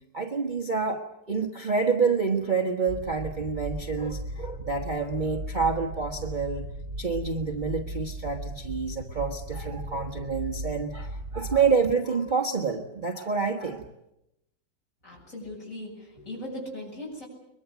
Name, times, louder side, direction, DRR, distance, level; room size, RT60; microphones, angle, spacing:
voice 1, 0.1-6.6 7.0-13.8, right 5 dB, 30° right, 2 dB, 1.4 m, -28 dB
sound 1, 2.9-11.7, right 1 dB, 45° right, 1.6 m, -37 dB
voice 2, 15.0-17.3, left 1 dB, 45° left, -2 dB, 8.2 m, -39 dB
23.0 x 22.5 x 8.2 m, 0.85 s
omnidirectional pair, 1.9 m